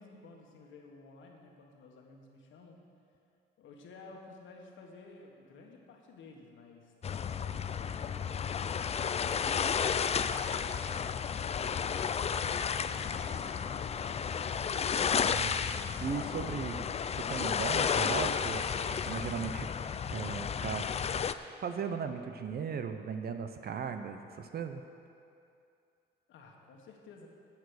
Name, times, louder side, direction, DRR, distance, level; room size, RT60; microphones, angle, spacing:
voice 1, 0.0-2.9 3.6-10.2 10.5-14.1 26.3-27.3, left 3 dB, 75° left, 1 dB, 1.6 m, -54 dB
Lake Beach Waves, 7.0-21.3, left 7 dB, 30° left, 0.4 m, -32 dB
voice 2, 15.1-15.5 16.0-16.9 17.2-18.6 18.9-19.7 20.1-20.9 21.6-24.8, right 6 dB, 50° right, 7 dB, 0.7 m, -37 dB
10.5 x 7.3 x 6.5 m, 2.5 s
cardioid pair, 90°, 20 cm